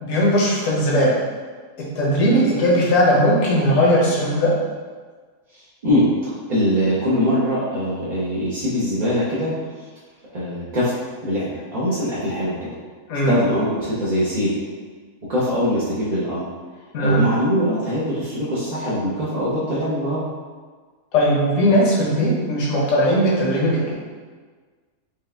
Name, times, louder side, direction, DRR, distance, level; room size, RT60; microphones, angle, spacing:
voice 1, 0.0-1.2 1.9-4.5 13.1-13.3 16.9-17.2 21.1-23.9, equal, 65° left, -5 dB, 1.3 m, -18 dB
voice 2, 5.5-6.1 6.5-9.5 10.3-12.7 13.2-14.5 15.3-16.5 17.0-20.3, equal, 40° right, -10 dB, 0.7 m, -22 dB
4.8 x 2.4 x 3.3 m, 1.5 s
omnidirectional pair, 1.5 m